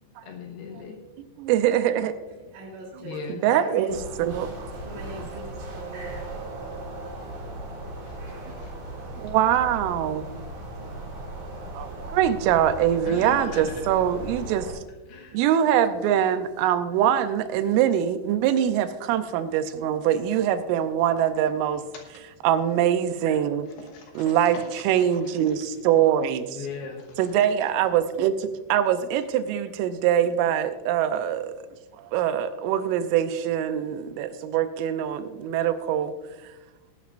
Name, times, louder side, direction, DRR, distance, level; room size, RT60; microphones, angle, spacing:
voice 1, 0.2-1.0 3.0-3.6 8.1-9.1 13.1-13.8 15.1-15.4 23.8-25.2 26.5-27.2, left 5 dB, 70° left, 1 dB, 2.6 m, -39 dB
voice 2, 1.2-2.1 3.0-4.7 5.1-5.3 9.2-10.3 11.8-14.7 15.3-21.8 22.4-23.7 24.2-26.6 27.2-31.5 32.0-36.1, right 10 dB, 90° right, 10 dB, 3.3 m, -23 dB
voice 3, 2.5-3.9 4.8-6.4, right 2 dB, 70° right, -2 dB, 5.7 m, -40 dB
sound 1, 3.9-14.7, right 1 dB, 45° right, 3.4 m, -37 dB
19.0 x 11.5 x 2.5 m, 1.1 s
omnidirectional pair, 5.7 m